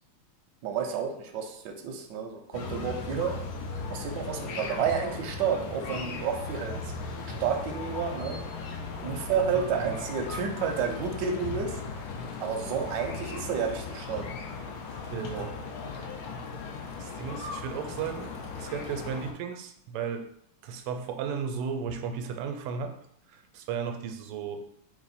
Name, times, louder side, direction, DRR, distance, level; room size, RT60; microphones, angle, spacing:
voice 1, 0.6-3.4 3.9-7.0 7.4-8.4 9.0-11.8 12.4-14.2 15.3-15.5, right 6 dB, 70° right, 3 dB, 1.1 m, -30 dB
sound 1, 2.5-19.3, left 4 dB, 85° left, 0.8 m, -37 dB
voice 2, 9.1-10.0 10.4-10.5 15.1-15.5 17.0-20.3 20.6-23.0 23.3-24.6, right 6 dB, 90° right, 6 dB, 1.5 m, -35 dB
3.5 x 3.0 x 4.1 m, 0.71 s
omnidirectional pair, 2.4 m